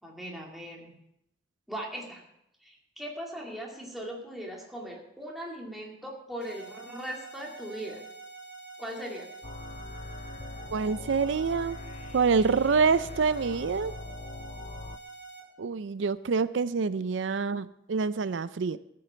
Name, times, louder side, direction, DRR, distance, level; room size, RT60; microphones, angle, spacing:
voice 1, 0.0-0.9 1.7-2.2 2.6-8.0 8.8-9.3, right 1 dB, ahead, -2 dB, 2.4 m, -39 dB
sound 1, 6.4-15.4, right 3 dB, 70° left, 4.5 m, -46 dB
sound 2, 9.4-15.0, left 3 dB, 35° left, 0.4 m, -42 dB
voice 2, 10.7-11.8 12.1-13.9 15.6-18.8, right 5 dB, 90° right, 15 dB, 0.5 m, -26 dB
13.5 x 7.7 x 6.8 m, 0.81 s
head